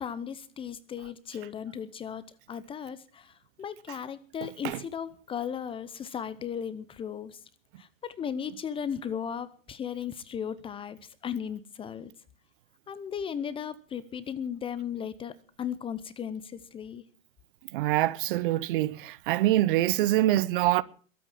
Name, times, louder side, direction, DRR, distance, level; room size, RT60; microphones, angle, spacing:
voice 1, 0.0-3.3 3.6-7.4 7.8-12.1 12.9-17.0, left 8 dB, 15° left, 0.8 m, -36 dB
voice 2, 17.7-20.8, right 15 dB, 40° right, 0.9 m, -25 dB
21.5 x 8.9 x 7.3 m
hypercardioid pair, 120°, 39 cm